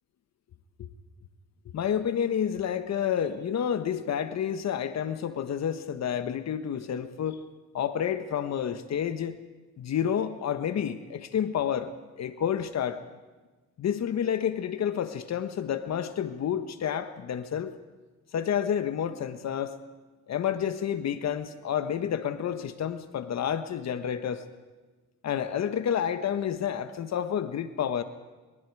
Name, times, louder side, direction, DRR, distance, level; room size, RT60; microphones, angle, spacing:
voice 1, 1.7-7.4 7.7-9.4 9.8-11.9 12.2-13.0 13.8-17.8 18.3-19.8 20.3-24.4 25.2-28.0, left 8 dB, 60° left, 10 dB, 1.4 m, -29 dB
28.0 x 25.0 x 4.9 m, 1.3 s
cardioid pair, 90°, 30 cm